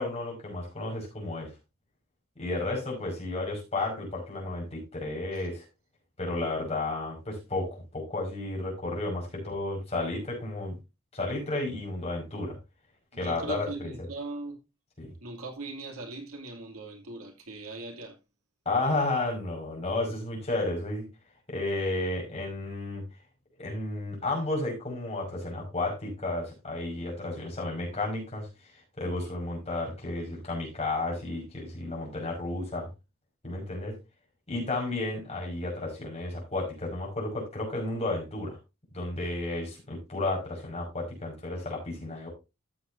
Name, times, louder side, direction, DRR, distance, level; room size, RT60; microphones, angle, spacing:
voice 1, 0.0-1.5 2.4-5.7 6.2-10.7 11.1-12.6 13.2-14.1 15.0-15.1 18.7-21.1 21.5-23.0 23.6-28.5 29.0-32.9 33.4-33.9 34.5-38.6 38.9-42.3, left 2 dB, 30° left, 5.6 m, -32 dB
voice 2, 13.1-14.6 15.2-18.2, right 2 dB, 90° right, 2.7 m, -40 dB
13.5 x 7.9 x 2.7 m
head